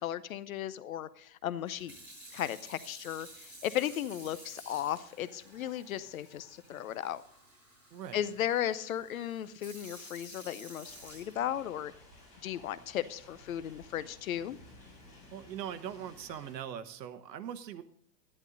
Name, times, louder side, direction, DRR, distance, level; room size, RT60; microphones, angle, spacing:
voice 1, 0.0-1.9 2.3-7.2 8.1-11.9 12.4-14.6, left 11 dB, 55° left, 15 dB, 0.7 m, -35 dB
Sink (filling or washing) / Fill (with liquid), 1.6-11.9 12.5-12.8, equal, 5° right, 5.1 m, -53 dB
sound 1, 10.8-16.5, left 2 dB, 15° left, 5.5 m, -56 dB
voice 2, 15.3-17.8, right 9 dB, 80° right, 11 dB, 1.2 m, -41 dB
11.0 x 11.0 x 3.9 m, 0.62 s
supercardioid pair, 175°, 49 cm